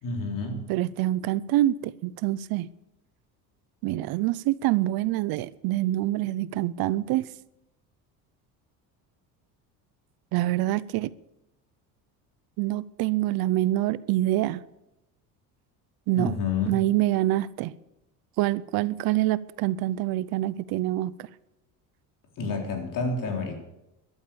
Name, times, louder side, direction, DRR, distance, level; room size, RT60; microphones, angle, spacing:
voice 1, 0.0-0.7 16.1-16.8 22.4-23.6, left 4 dB, 55° left, 3.9 m, -29 dB
voice 2, 0.7-2.7 3.8-7.3 10.3-11.1 12.6-14.6 16.1-16.3 16.7-17.7 18.4-21.1, right 15 dB, 70° right, 0.7 m, -26 dB
13.5 x 12.0 x 7.0 m
cardioid pair, 125°, 38 cm